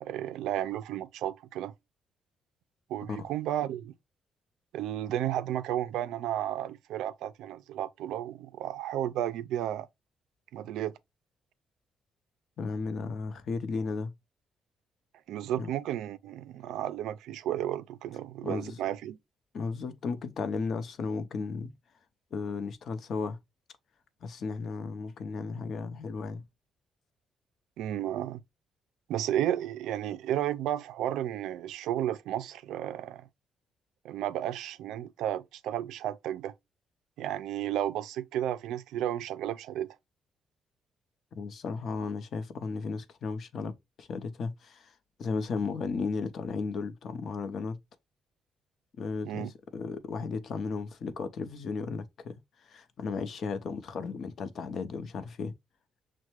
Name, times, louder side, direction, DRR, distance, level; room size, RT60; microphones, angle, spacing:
voice 1, 0.0-1.7 2.9-3.9 4.7-9.9 10.5-10.9 15.3-19.2 27.8-28.4 29.1-33.3 34.0-36.5 37.2-39.9 49.2-49.5, right 11 dB, 85° right, 0.3 m, -33 dB
voice 2, 12.6-14.1 15.6-15.7 18.4-18.8 19.5-21.7 22.3-23.4 24.2-26.4 41.4-43.7 44.0-44.9 45.2-47.8 49.0-55.5, left 4 dB, 60° left, 0.6 m, -35 dB
6.3 x 2.1 x 2.9 m
cardioid pair, 90°, 0 cm